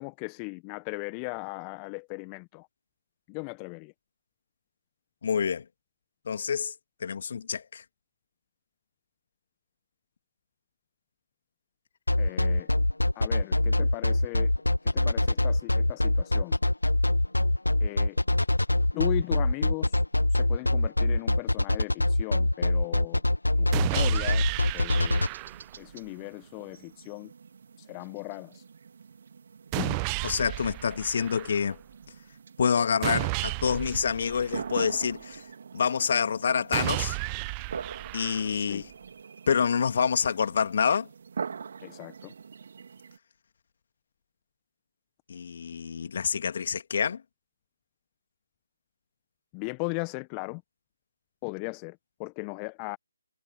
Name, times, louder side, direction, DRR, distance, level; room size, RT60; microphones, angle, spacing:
voice 1, 0.0-2.7 3.3-3.9 12.2-12.7 13.1-14.5 14.8-16.6 17.8-18.2 18.9-20.0 20.3-23.2 23.6-25.3 25.8-27.3 27.8-28.6 29.7-30.0 38.5-38.9 41.8-42.3 49.5-50.6 51.4-53.0, left 34 dB, 20° left, 1.4 m, -37 dB
voice 2, 5.2-5.6 6.3-6.7 7.0-7.8 30.2-31.8 32.6-35.4 35.7-37.2 38.1-38.9 39.5-41.1 45.3-47.2, left 6 dB, 45° left, 2.1 m, -27 dB
sound 1, 12.1-25.3, left 1 dB, 85° left, 0.5 m, -24 dB
sound 2, 23.7-25.7 29.7-31.7 33.0-35.0 36.7-38.7, right 32 dB, 20° right, 0.9 m, -33 dB
sound 3, 23.9-43.2, right 6 dB, 50° right, 3.2 m, -44 dB
figure-of-eight pair, 150°, 0 cm